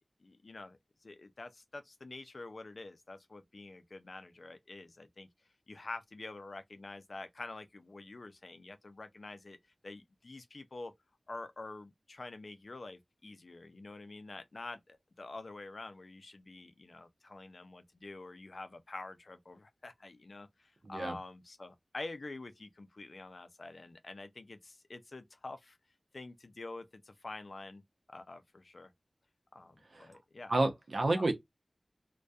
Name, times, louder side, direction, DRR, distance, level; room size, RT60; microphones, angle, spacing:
voice 1, 0.2-5.3 5.7-9.6 9.8-10.9 11.3-25.8 26.1-27.8 28.1-28.9 29.5-30.5 31.1-31.3, left 2 dB, 70° left, 0.4 m, -47 dB
voice 2, 20.8-21.2 29.9-30.1 30.5-31.3, right 2 dB, 80° right, 0.6 m, -30 dB
2.5 x 2.2 x 2.3 m
wide cardioid pair, 45°, 0 cm